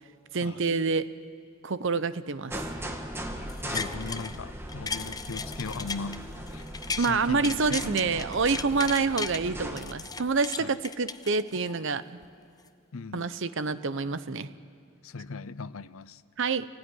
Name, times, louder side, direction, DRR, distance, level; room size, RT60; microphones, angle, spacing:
voice 1, 0.3-1.1 1.6-2.8 7.0-12.0 13.1-14.5 16.4-16.7, right 4 dB, 65° right, 14 dB, 0.8 m, -27 dB
sound 1, 2.5-9.8, equal, 10° right, 1.7 m, -39 dB
sound 2, 3.5-4.4 4.7-7.1 7.4-9.4 9.8-11.8 12.2-12.3, left 5 dB, 20° left, 0.6 m, -36 dB
voice 2, 3.6-6.3 6.5-6.7 7.0-8.2 10.6-10.7 12.9-13.4 15.0-16.2, left 4 dB, 80° left, 16 dB, 0.7 m, -38 dB
25.5 x 17.5 x 10.0 m, 2.3 s
head